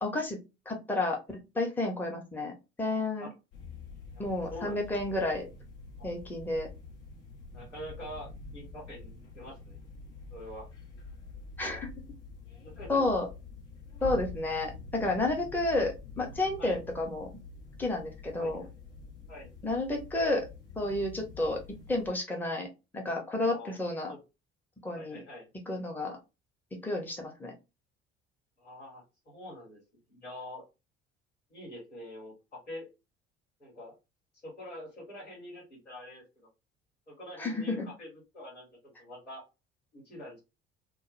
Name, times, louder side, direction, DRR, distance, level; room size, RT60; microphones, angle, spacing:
voice 1, 0.0-0.4 0.7-3.3 4.2-5.5 6.0-6.7 11.6-11.9 12.9-13.3 14.0-17.3 17.8-18.6 19.6-20.4 20.7-22.7 22.9-24.1 24.8-25.2 25.7-26.2 26.8-27.5 37.4-37.9, left 2 dB, 5° left, 1 dB, 0.7 m, -31 dB
sound 1, 3.5-22.1, left 3 dB, 65° left, 0.9 m, -46 dB
voice 2, 4.5-4.8 6.0-6.1 7.5-9.8 10.3-10.7 12.6-13.0 16.6-16.8 18.4-18.7 19.3-19.5 23.5-23.8 24.1-24.2 24.9-25.5 28.6-29.8 30.1-30.6 31.5-32.9 33.6-33.9 34.4-36.5 37.1-38.7 39.0-39.4 39.9-40.4, left 1 dB, 90° left, -4 dB, 1.1 m, -45 dB
2.2 x 2.1 x 3.0 m, 0.27 s
figure-of-eight pair, 55°, 34 cm